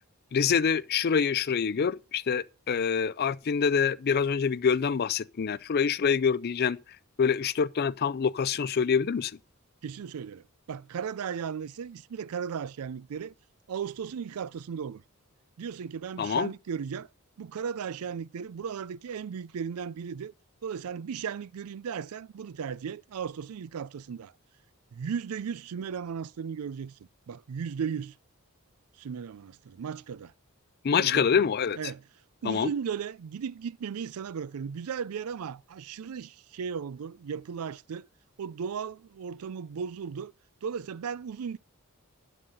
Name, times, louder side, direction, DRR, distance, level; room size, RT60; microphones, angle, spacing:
voice 1, 0.3-6.8 7.2-9.3 16.2-16.5 30.8-31.8 32.4-32.7, left 6 dB, 45° left, 0.4 m, -26 dB
voice 2, 9.8-13.3 13.7-15.0 15.6-17.1 17.4-20.3 20.6-24.3 24.9-27.0 27.3-28.1 29.0-30.3 31.0-31.3 31.8-32.0 32.4-38.1 38.4-40.3 40.6-41.6, right 7 dB, 85° right, 0.4 m, -36 dB
11.5 x 4.1 x 7.5 m
head